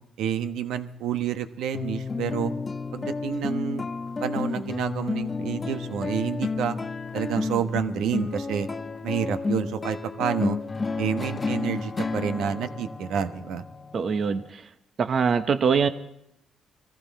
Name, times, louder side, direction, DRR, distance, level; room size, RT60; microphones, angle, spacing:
voice 1, 0.2-2.5 2.9-3.8 4.2-6.8 7.1-8.7 9.0-10.6 11.0-13.6, right 8 dB, 85° right, 10 dB, 1.1 m, -29 dB
sound 1, 1.7-14.5, left 4 dB, 30° left, 0.9 m, -31 dB
voice 2, 13.9-14.4 15.0-15.9, right 6 dB, 50° right, 10 dB, 1.1 m, -22 dB
22.0 x 15.0 x 4.2 m, 0.79 s
cardioid pair, 90°, 0 cm